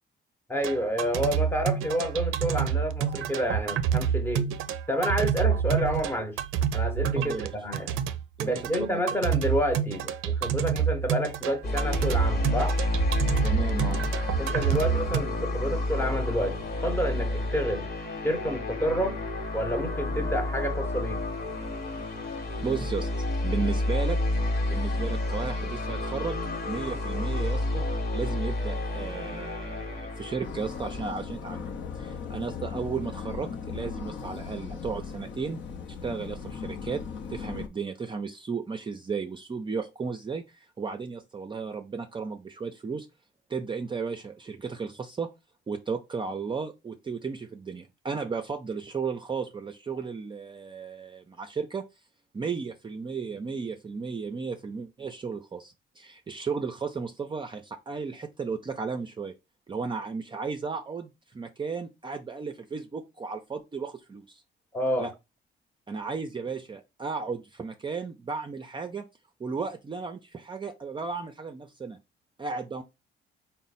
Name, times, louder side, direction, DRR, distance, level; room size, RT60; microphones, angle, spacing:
voice 1, 0.5-4.5 4.9-6.4 6.7-8.0 8.4-12.8 14.4-17.9 18.2-19.2 19.5-21.2 26.9-27.0 64.7-65.1, equal, 10° left, 0.7 m, -29 dB
sound 1, 0.6-15.2, right 8 dB, 85° right, 0.4 m, -28 dB
voice 2, 7.2-7.5 8.4-9.0 13.4-14.0 22.3-24.2 24.7-26.4 26.7-27.8 28.1-35.6 36.0-37.0 37.3-43.1 43.5-45.3 45.7-51.9 52.3-59.3 59.7-64.4 65.0-65.1 65.9-69.1 69.4-72.0 72.4-72.8, right 5 dB, 25° right, 0.4 m, -34 dB
sound 2, 11.6-31.1, left 1 dB, 50° left, 1.1 m, -30 dB
sound 3, 30.4-37.7, left 6 dB, 70° left, 0.7 m, -38 dB
3.9 x 2.0 x 4.0 m
cardioid pair, 90°, 20 cm